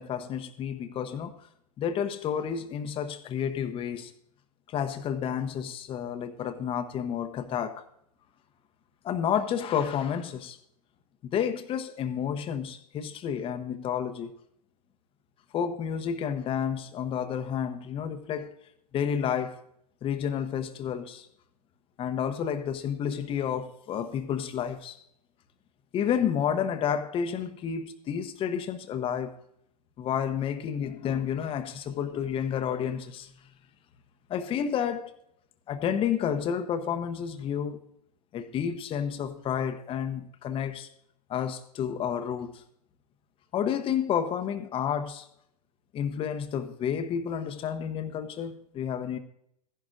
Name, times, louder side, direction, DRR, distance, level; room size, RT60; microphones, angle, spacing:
voice 1, 0.0-1.3 1.8-4.1 4.7-7.8 9.0-10.6 11.2-14.3 15.5-18.5 18.9-19.6 20.0-21.3 22.0-25.0 25.9-29.4 30.0-33.3 34.3-35.1 35.7-37.8 38.3-40.9 41.3-42.6 43.5-45.3 45.9-49.2, left 8 dB, 25° left, 0.9 m, -30 dB
14.0 x 11.0 x 2.6 m
hypercardioid pair, 105°, 21 cm